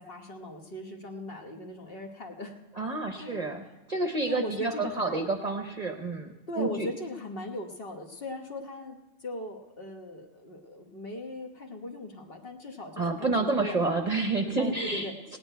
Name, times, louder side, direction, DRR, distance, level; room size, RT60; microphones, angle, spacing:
voice 1, 0.0-2.6 3.2-3.4 4.3-5.2 6.5-13.8 14.6-15.1, left 1 dB, 50° left, 3 dB, 1.3 m, -38 dB
voice 2, 2.7-6.9 13.0-15.4, right 3 dB, 35° right, 4 dB, 0.8 m, -29 dB
17.5 x 9.4 x 4.5 m, 1.1 s
omnidirectional pair, 1.4 m